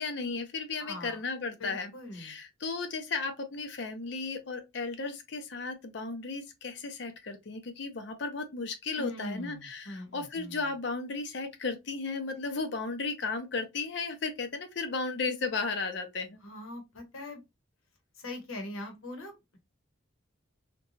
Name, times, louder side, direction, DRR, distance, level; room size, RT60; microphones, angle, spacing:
voice 1, 0.0-16.4, left 4 dB, 55° left, 0.5 m, -35 dB
voice 2, 0.8-1.2 1.6-2.4 9.0-10.7 16.4-17.4 18.1-19.6, left 1 dB, 90° left, 0.9 m, -42 dB
2.8 x 2.2 x 2.6 m
head